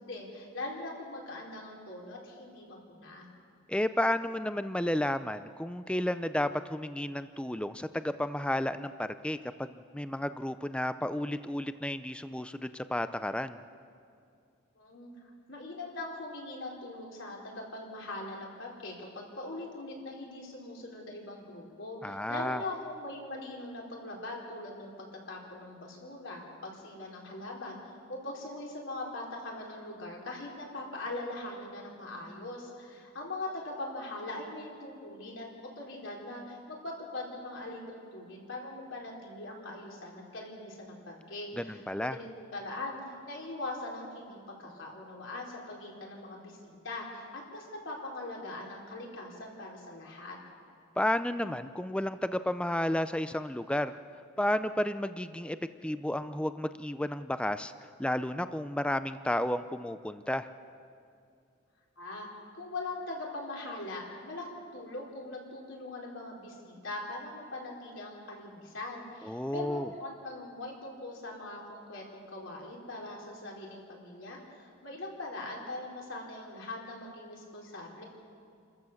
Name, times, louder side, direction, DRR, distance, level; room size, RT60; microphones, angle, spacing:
voice 1, 0.0-3.3 14.8-15.1 15.5-27.8 28.1-35.5 35.8-50.4 62.0-62.3 62.5-78.0, left 2 dB, 65° left, -2 dB, 4.2 m, -41 dB
voice 2, 3.7-13.6 22.0-22.6 41.6-42.2 51.0-54.0 54.4-55.6 55.8-57.7 58.0-60.5 69.2-69.9, left 1 dB, 5° left, 12 dB, 0.4 m, -32 dB
29.5 x 14.0 x 7.2 m, 2.5 s
head